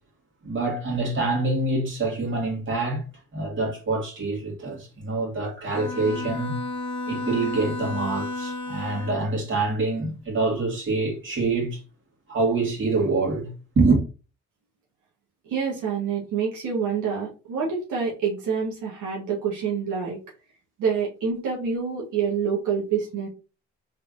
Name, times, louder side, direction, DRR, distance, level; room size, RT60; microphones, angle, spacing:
voice 1, 0.4-3.0 3.3-6.5 7.1-11.8 12.3-13.5 13.8-14.0, right 3 dB, 40° right, 2.0 m, -25 dB
Bowed string instrument, 5.7-9.4, left 2 dB, 20° left, 1.3 m, -32 dB
voice 2, 15.5-20.2 20.8-23.3, right 6 dB, 85° right, 1.3 m, -27 dB
3.5 x 3.5 x 2.5 m
cardioid pair, 90°, 30 cm